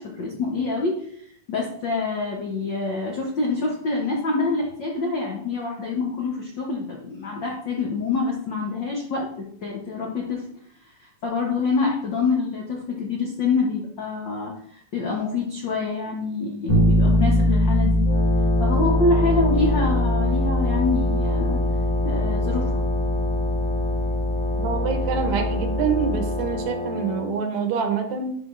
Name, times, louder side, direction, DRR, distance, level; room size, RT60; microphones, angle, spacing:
voice 1, 0.0-10.4 10.8-18.0 18.6-21.6 22.0-22.8, left 3 dB, 80° left, -1 dB, 1.0 m, -26 dB
Bass guitar, 16.7-26.6, left 1 dB, 60° left, 2.4 m, -22 dB
Wind instrument woodwind instrument, 18.0-27.4, left 2 dB, 45° left, 1.2 m, -30 dB
voice 2, 24.6-28.4, right 6 dB, 70° right, 4 dB, 2.0 m, -26 dB
10.5 x 5.0 x 2.5 m, 0.66 s
omnidirectional pair, 3.6 m